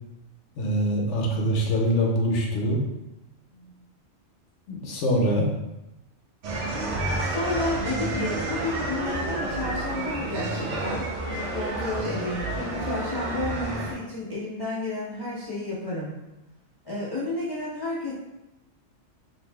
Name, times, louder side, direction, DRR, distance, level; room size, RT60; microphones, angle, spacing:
voice 1, 0.6-2.8 4.7-5.5, equal, 70° left, 0 dB, 0.9 m, -24 dB
sound 1, 6.4-13.9, right 2 dB, 70° right, 1.0 m, -30 dB
voice 2, 6.7-16.1 16.8-18.1, left 2 dB, 35° left, -9 dB, 0.4 m, -32 dB
2.9 x 2.6 x 3.2 m, 0.97 s
omnidirectional pair, 1.4 m